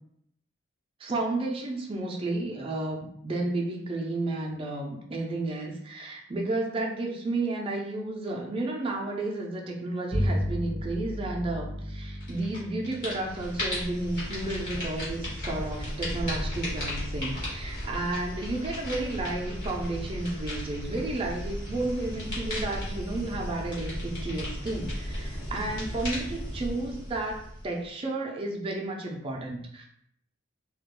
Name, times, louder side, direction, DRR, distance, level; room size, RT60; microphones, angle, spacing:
voice 1, 1.0-29.9, right 2 dB, 25° right, 0 dB, 0.3 m, -32 dB
Bowed string instrument, 10.1-15.8, equal, 75° left, 1.1 m, -34 dB
sound 1, 12.2-12.6 12.8-27.9, equal, 45° left, 1.1 m, -35 dB
2.3 x 2.1 x 2.9 m, 0.72 s
head